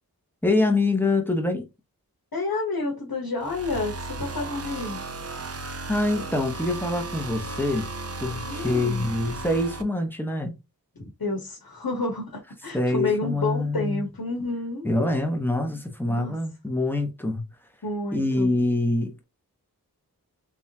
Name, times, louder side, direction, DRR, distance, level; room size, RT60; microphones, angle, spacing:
voice 1, 0.4-1.7 5.9-7.9 8.2-10.6 12.7-14.0 14.8-17.4 18.1-19.2, left 2 dB, 5° left, 1.1 m, -25 dB
voice 2, 2.3-5.0 8.5-9.1 11.0-14.9 16.1-16.3 17.8-18.5, left 2 dB, 70° left, 1.3 m, -30 dB
sound 1, 3.4-9.8, right 2 dB, 40° right, 0.6 m, -35 dB
3.6 x 3.0 x 2.8 m
wide cardioid pair, 45°, 37 cm